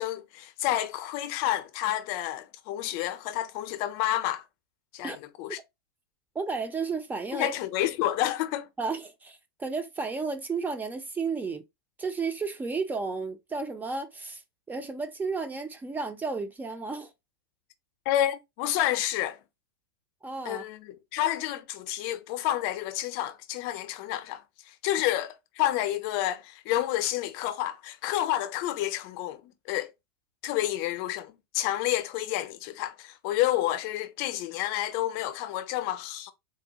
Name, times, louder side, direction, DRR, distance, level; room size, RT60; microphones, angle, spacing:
voice 1, 0.0-4.4 4.9-5.6 7.3-8.7 18.1-19.4 20.4-29.9 30.4-36.3, left 13 dB, 45° left, 0.5 m, -29 dB
voice 2, 6.3-7.6 8.8-11.6 12.0-14.4 14.7-17.1 20.2-20.6, right 4 dB, 15° right, 0.4 m, -32 dB
3.7 x 2.1 x 2.8 m
hypercardioid pair, 100°, 13 cm